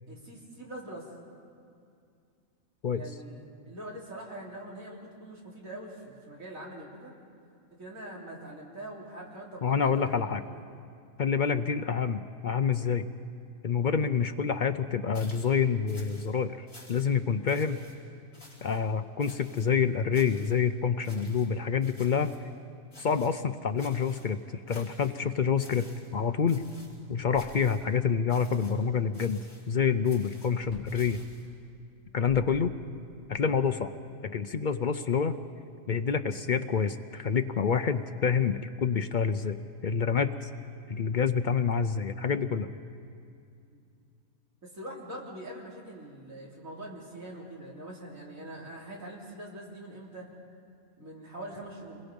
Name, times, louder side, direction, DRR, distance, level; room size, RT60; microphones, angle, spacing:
voice 1, 0.1-1.1 2.9-7.1 7.7-10.6 43.7-43.8 44.6-50.3 51.0-52.0, right 1 dB, 65° right, -4 dB, 3.9 m, -43 dB
voice 2, 9.6-10.4 11.2-13.0 13.6-17.8 18.6-22.3 23.0-24.4 24.7-25.9 26.1-26.6 27.1-31.2 32.1-32.7 33.3-33.9 34.2-35.4 35.9-39.6 39.8-40.5 40.9-42.7, left 6 dB, 60° left, 9 dB, 0.5 m, -27 dB
sound 1, 15.1-15.6 15.9-16.3 16.7-17.2 17.5-18.0 18.3-18.8 19.2-19.7 20.1-20.6 21.0-21.5 21.8-22.4 22.9-23.4 23.8-24.3 24.7-25.2 25.6-26.1 26.5-27.0 27.3-27.9 28.3-28.8 29.1-29.7 30.0-31.5, left 1 dB, 40° left, 4.2 m, -53 dB
sound 2, 30.6-31.1 31.9-33.1, left 2 dB, 25° left, 3.6 m, -50 dB
28.0 x 21.5 x 5.3 m, 2.4 s
omnidirectional pair, 1.5 m